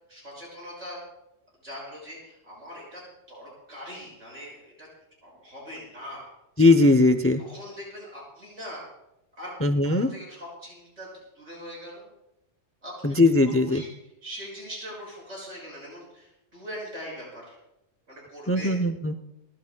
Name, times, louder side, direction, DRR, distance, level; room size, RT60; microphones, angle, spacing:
voice 1, 0.1-1.0 1.6-3.0 3.3-4.9 5.2-6.3 7.4-8.8 9.4-9.5 9.8-11.1 11.3-12.1 12.8-13.9 14.2-17.6 18.1-18.8, equal, 75° right, -4 dB, 6.8 m, -41 dB
voice 2, 6.6-7.4 9.6-10.1 13.0-13.8 18.5-19.1, left 2 dB, 20° left, 8 dB, 0.4 m, -19 dB
29.5 x 13.5 x 2.3 m, 0.89 s
omnidirectional pair, 1.3 m